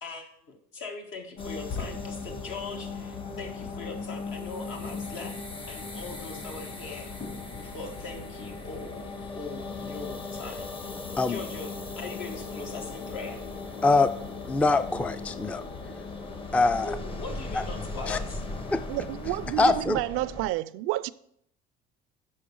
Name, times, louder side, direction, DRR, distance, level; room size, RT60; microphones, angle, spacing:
voice 1, 0.0-5.4 5.7-7.1 7.6-9.1 9.3-10.7 11.3-13.4 16.8-18.4, left 3 dB, 70° left, 1.6 m, -40 dB
sound 1, 1.4-19.7, left 4 dB, 50° left, 2.7 m, -39 dB
sound 2, 1.4-20.5, left 2 dB, 25° left, 0.8 m, -41 dB
voice 2, 14.5-15.6 16.5-17.0 18.1-18.2 18.7-18.8 19.6-20.0, left 3 dB, 5° left, 0.3 m, -23 dB
voice 3, 18.9-21.1, right 17 dB, 85° right, 0.4 m, -30 dB
6.4 x 5.3 x 7.0 m
cardioid pair, 105°, 21 cm